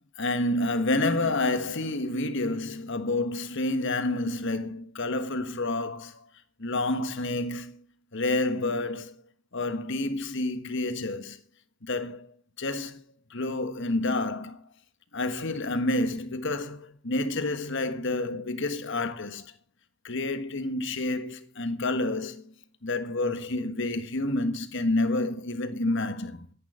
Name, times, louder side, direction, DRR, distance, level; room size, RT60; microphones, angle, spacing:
voice 1, 0.2-6.3 6.6-7.8 8.1-9.2 9.5-11.4 11.8-12.3 12.6-13.0 13.3-14.6 15.1-19.5 20.0-22.5 22.8-26.5, left 2 dB, 60° left, 1.5 m, -29 dB
14.0 x 10.5 x 5.0 m
head